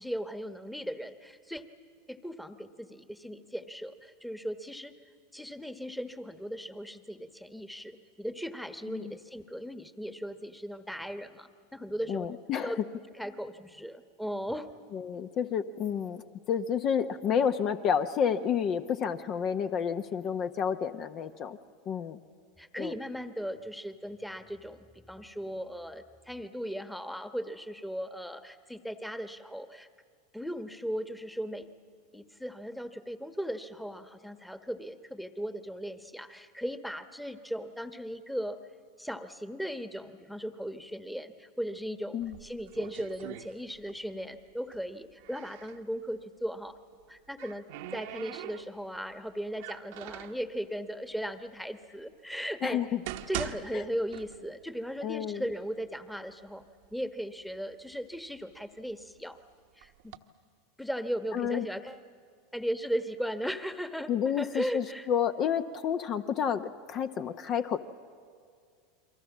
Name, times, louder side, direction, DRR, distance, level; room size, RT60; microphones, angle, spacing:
voice 1, 0.0-1.6 2.1-4.9 5.3-12.8 13.1-14.7 22.6-29.9 30.3-31.7 32.1-38.6 39.0-46.8 47.1-47.6 47.9-52.8 53.3-56.6 56.9-59.4 59.8-60.1 60.8-62.0 62.5-65.1, equal, ahead, 10 dB, 1.2 m, -37 dB
voice 2, 12.1-12.8 14.9-16.2 16.5-21.6 21.9-22.2 22.8-22.9 42.1-42.3 52.6-53.0 53.7-53.8 55.0-55.4 61.3-61.6 64.1-67.8, left 8 dB, 45° left, 9 dB, 0.8 m, -30 dB
sound 1, 42.2-44.1 44.4-45.8 46.9-49.0 49.5-50.5 51.2-51.3 52.0-52.1 52.7-54.7 55.0-55.1 55.8-55.9 56.3-57.0 57.5-59.2 59.8-60.2, right 13 dB, 70° right, 1.1 m, -43 dB
29.5 x 23.0 x 7.3 m, 2.1 s
hypercardioid pair, 100°, 0 cm